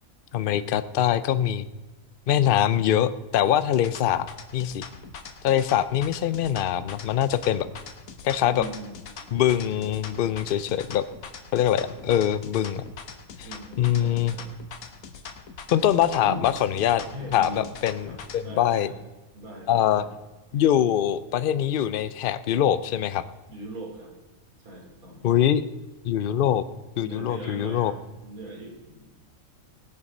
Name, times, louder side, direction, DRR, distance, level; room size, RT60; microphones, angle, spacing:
voice 1, 0.3-1.7 2.3-4.3 4.5-4.9 5.4-7.7 8.2-8.6 9.3-11.0 11.5-12.8 13.4-13.5 13.8-14.4 15.7-17.0 17.3-18.9 19.7-20.0 20.5-23.2 25.2-25.6 26.0-26.6 27.0-27.9, left 10 dB, 60° left, 14 dB, 0.6 m, -23 dB
sound 1, 3.6-18.4, left 6 dB, 80° left, 1.5 m, -42 dB
voice 2, 8.5-9.1 11.8-11.9 13.4-14.5 16.2-16.5 17.0-17.7 18.0-19.0 19.3-20.1 23.5-24.1 24.6-25.3 27.0-29.1, right 1 dB, 90° right, -1 dB, 3.5 m, -40 dB
19.0 x 6.9 x 5.4 m, 1.1 s
omnidirectional pair, 1.5 m